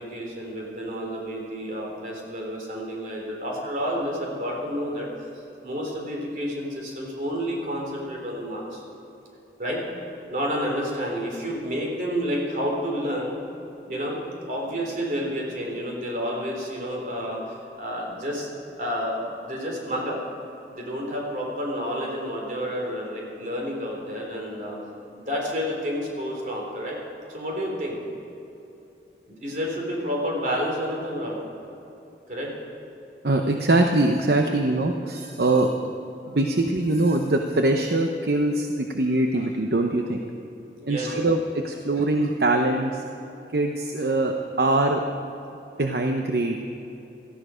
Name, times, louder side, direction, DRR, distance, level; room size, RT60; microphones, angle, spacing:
voice 1, 0.0-5.1 5.6-8.8 9.6-9.8 10.3-13.4 13.9-18.5 18.8-20.2 20.7-24.8 25.1-27.0 27.3-28.0 29.3-31.4 32.3-32.5 40.8-41.2, equal, 45° right, -2 dB, 3.6 m, -30 dB
voice 2, 33.2-35.7 36.3-40.2 40.9-43.0 43.5-45.0 45.8-46.6, right 2 dB, 65° right, 4 dB, 0.8 m, -23 dB
17.5 x 14.0 x 5.1 m, 2.9 s
head